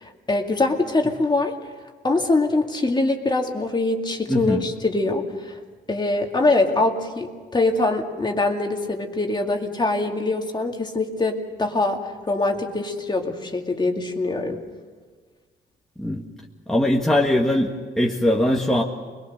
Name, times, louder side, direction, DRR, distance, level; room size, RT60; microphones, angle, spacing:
voice 1, 0.3-1.5 2.0-5.6 5.9-12.0 12.3-14.6, left 2 dB, 20° left, 2 dB, 2.3 m, -23 dB
voice 2, 4.3-4.7 16.0-16.2 16.7-18.8, left 1 dB, ahead, -1 dB, 1.7 m, -21 dB
25.0 x 21.0 x 6.6 m, 1.5 s
cardioid pair, 90°, 20 cm